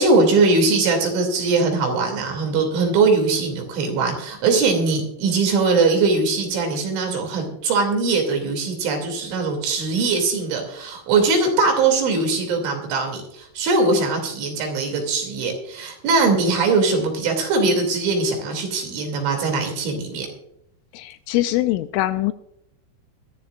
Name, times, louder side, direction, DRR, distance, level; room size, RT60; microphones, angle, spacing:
voice 1, 0.0-20.3, right 3 dB, 70° right, 3 dB, 5.1 m, -21 dB
voice 2, 20.9-22.3, left 16 dB, 85° left, 11 dB, 2.9 m, -22 dB
21.5 x 13.5 x 2.5 m, 0.76 s
omnidirectional pair, 5.9 m